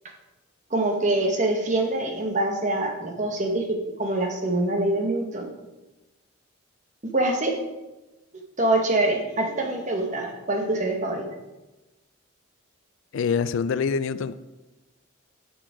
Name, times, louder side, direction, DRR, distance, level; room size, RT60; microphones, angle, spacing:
voice 1, 0.7-5.5 7.1-7.6 8.6-11.2, right 2 dB, 35° right, 2 dB, 1.0 m, -25 dB
voice 2, 13.1-14.3, left 6 dB, 70° left, 15 dB, 0.3 m, -25 dB
6.5 x 6.2 x 4.9 m, 1.1 s
head